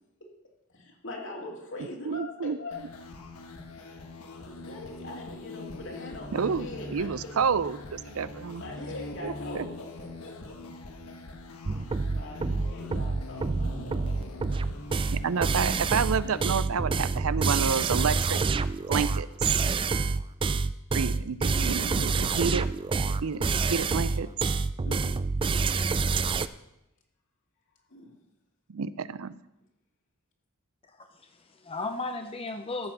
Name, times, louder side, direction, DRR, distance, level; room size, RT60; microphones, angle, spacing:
voice 1, 0.7-3.0 4.4-7.1 8.5-10.6 11.7-14.7 16.2-16.8 21.5-22.1 24.8-25.2 27.9-28.1, left 2 dB, 60° left, 0 dB, 2.5 m, -42 dB
voice 2, 2.0-2.6 6.3-8.6 9.2-9.7 15.1-18.4 18.9-19.3 20.9-22.7 23.1-24.3 28.7-29.3, right 6 dB, 75° right, 16 dB, 0.5 m, -29 dB
sound 1, 2.7-16.4, left 2 dB, 80° left, 1.4 m, -42 dB
sound 2, 11.7-26.5, right 4 dB, 25° right, 0.3 m, -27 dB
voice 3, 30.8-32.9, left 3 dB, 25° left, 7 dB, 0.5 m, -36 dB
14.0 x 5.7 x 6.8 m, 0.90 s
head